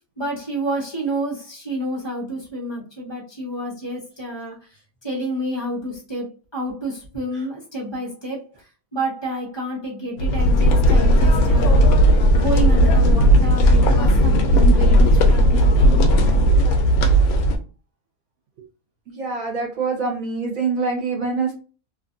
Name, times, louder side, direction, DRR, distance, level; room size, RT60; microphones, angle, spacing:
voice 1, 0.2-8.5 8.9-11.9 12.3-16.5, right 1 dB, 20° left, 1.0 m, -29 dB
sound 1, 10.2-17.6, equal, 90° left, 1.1 m, -15 dB
voice 2, 19.1-21.5, right 4 dB, 70° right, 1.3 m, -25 dB
2.9 x 2.4 x 2.5 m
omnidirectional pair, 1.5 m